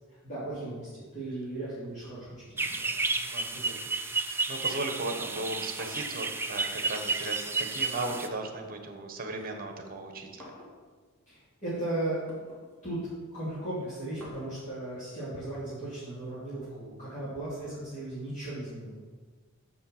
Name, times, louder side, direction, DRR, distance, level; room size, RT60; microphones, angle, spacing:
voice 1, 0.2-3.8 11.3-12.2 12.8-13.0 13.3-19.0, right 1 dB, 40° left, -11 dB, 2.9 m, -37 dB
sound 1, 2.6-8.3, right 3 dB, 10° right, 0.5 m, -32 dB
voice 2, 3.3-3.9 4.2-10.5, right 2 dB, 45° right, 5 dB, 1.2 m, -37 dB
sound 2, 5.2-6.2 7.1-8.7 9.0-16.3, left 1 dB, 10° left, 2.3 m, -52 dB
7.1 x 5.5 x 7.1 m, 1.4 s
head